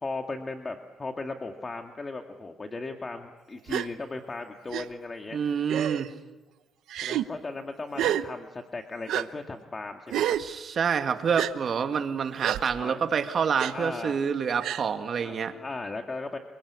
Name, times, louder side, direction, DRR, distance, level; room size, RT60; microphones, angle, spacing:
voice 1, 0.0-5.4 7.0-10.4 12.8-13.0 13.4-14.2 15.2-16.4, left 3 dB, 30° left, 4 dB, 2.1 m, -37 dB
Gasp, 3.7-3.9 4.7-4.8 5.7-6.1 6.9-7.2 8.0-8.2 9.1-9.2 10.1-10.4 11.4-11.5 12.4-12.6 13.6-13.7 14.6-14.8, right 12 dB, 80° right, 1.0 m, -28 dB
voice 2, 5.3-6.1 10.4-15.5, right 6 dB, 50° right, 6 dB, 2.3 m, -27 dB
28.5 x 23.5 x 8.3 m, 1.1 s
cardioid pair, 90°, 0 cm